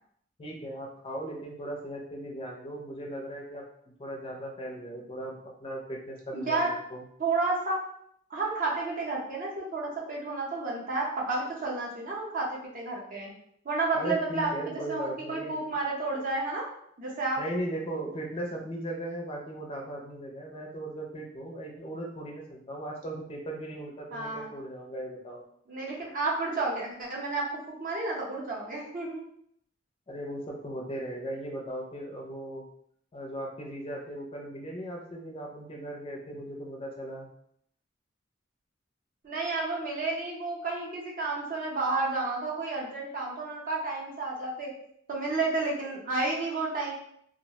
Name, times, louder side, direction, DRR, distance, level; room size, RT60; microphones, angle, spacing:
voice 1, 0.4-3.6 4.0-7.0 13.9-15.6 17.4-25.4 30.1-32.6 33.1-37.3, right 1 dB, 30° left, 0 dB, 0.4 m, -37 dB
voice 2, 6.3-6.7 7.2-7.8 8.3-13.3 13.6-16.6 17.0-17.4 24.1-24.5 25.7-27.5 27.8-29.2 39.2-44.7 45.1-46.9, right 3 dB, 45° right, -2 dB, 0.6 m, -31 dB
2.3 x 2.1 x 2.7 m, 0.70 s
head